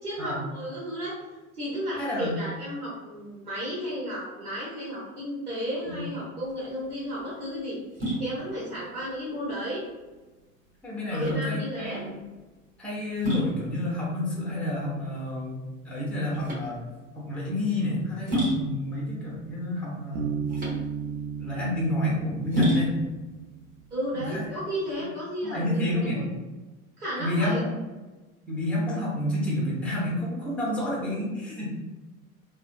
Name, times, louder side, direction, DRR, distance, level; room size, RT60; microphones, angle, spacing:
voice 1, 0.0-1.2 1.5-7.8 8.2-9.8 11.1-12.0 23.9-26.2 27.0-27.6, equal, 85° right, -7 dB, 1.0 m, -33 dB
voice 2, 1.9-2.3 5.9-6.0 10.8-12.1 12.8-16.8 17.1-20.4 21.4-23.0 24.1-24.4 25.4-26.2 27.2-27.8 28.5-31.7, left 1 dB, 5° left, -4 dB, 0.7 m, -29 dB
sound 1, 6.4-25.0, equal, 20° right, 1.1 m, -33 dB
Bass guitar, 20.1-23.8, right 7 dB, 55° right, 0.6 m, -34 dB
3.5 x 2.2 x 2.3 m, 1.2 s
figure-of-eight pair, 80°, 44 cm